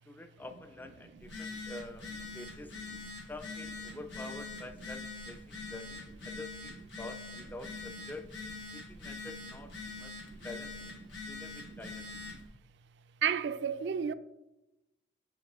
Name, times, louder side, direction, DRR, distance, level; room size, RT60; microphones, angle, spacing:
voice 1, 0.1-2.1 2.3-2.7 3.3-8.3 8.7-10.2 10.4-10.8 11.3-12.1, left 2 dB, 10° left, 0.3 m, -47 dB
Telephone, 1.2-12.5, left 3 dB, 85° left, 1.5 m, -44 dB
voice 2, 9.9-10.4 11.7-11.8 12.3-12.4 13.2-14.1, right 8 dB, 75° right, 0.3 m, -34 dB
7.1 x 4.9 x 3.0 m
head